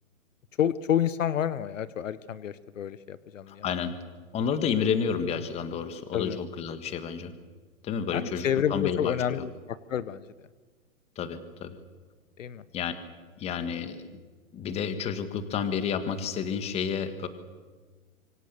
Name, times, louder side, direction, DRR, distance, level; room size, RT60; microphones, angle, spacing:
voice 1, 0.6-3.7 6.1-6.4 8.1-10.3 12.4-12.6, left 9 dB, 65° left, 17 dB, 1.1 m, -29 dB
voice 2, 3.5-3.9 4.3-7.3 7.8-9.4 11.1-11.8 12.7-12.9 13.4-14.0 14.5-17.3, left 7 dB, 15° left, 11 dB, 1.6 m, -30 dB
26.5 x 24.5 x 6.9 m, 1.4 s
hypercardioid pair, 145°, 42 cm